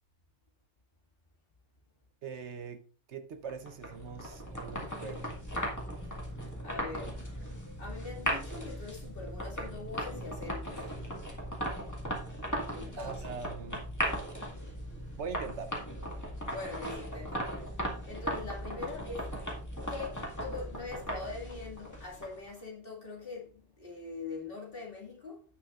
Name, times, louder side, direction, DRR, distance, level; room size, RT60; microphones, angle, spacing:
voice 1, 2.2-2.8 3.1-5.3 12.9-13.9 15.1-15.8, right 5 dB, 80° right, 1.2 m, -42 dB
sound 1, 3.5-22.5, equal, 15° left, 2.0 m, -38 dB
voice 2, 6.6-7.2 7.8-10.9 12.7-13.4 16.4-19.3 19.9-25.4, left 4 dB, 55° left, 2.5 m, -43 dB
16.5 x 6.0 x 2.5 m
omnidirectional pair, 1.1 m